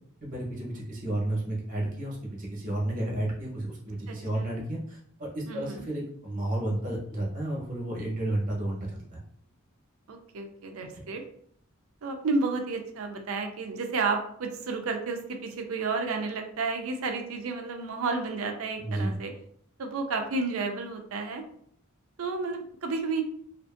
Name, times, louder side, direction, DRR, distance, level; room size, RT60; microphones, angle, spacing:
voice 1, 0.2-9.2 10.9-11.0 18.8-19.2, right 1 dB, 40° right, -3 dB, 0.9 m, -32 dB
voice 2, 4.1-4.7 5.5-5.9 10.1-11.2 12.0-19.3 19.8-21.4 22.2-23.2, right 4 dB, 70° right, 4 dB, 0.5 m, -31 dB
2.5 x 2.5 x 2.5 m, 0.65 s
head